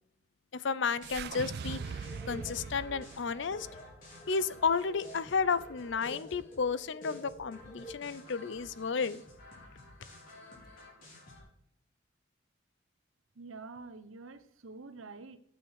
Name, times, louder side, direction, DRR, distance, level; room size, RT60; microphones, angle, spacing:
voice 1, 0.5-1.8 2.3-3.7 4.3-9.2, left 5 dB, 65° left, 17 dB, 0.6 m, -32 dB
sound 1, 1.0-11.4, left 2 dB, 45° left, 4.9 m, -53 dB
sound 2, 1.0-5.3, right 6 dB, 50° right, 0.3 m, -42 dB
sound 3, 1.6-8.0, left 1 dB, 25° left, 1.0 m, -50 dB
voice 2, 13.4-15.4, right 3 dB, 90° right, 13 dB, 0.9 m, -47 dB
9.1 x 7.0 x 6.4 m, 0.75 s
head